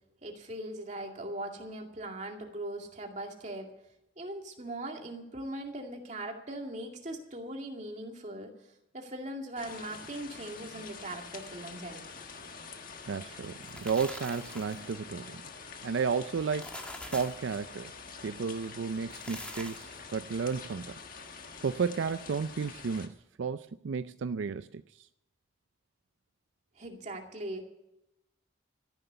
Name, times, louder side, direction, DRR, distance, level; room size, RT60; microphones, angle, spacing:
voice 1, 0.2-3.7 4.2-8.5 8.9-12.0 26.8-27.6, right 1 dB, 40° right, 2.3 m, -40 dB
sound 1, 9.6-23.1, left 5 dB, 45° left, 1.5 m, -46 dB
voice 2, 13.1-15.4 15.8-17.9 18.2-21.0 21.6-25.1, right 5 dB, 80° right, 0.4 m, -33 dB
sound 2, 13.4-14.9 16.4-17.5 19.0-20.0, left 1 dB, 5° left, 1.3 m, -44 dB
14.0 x 10.5 x 6.9 m
head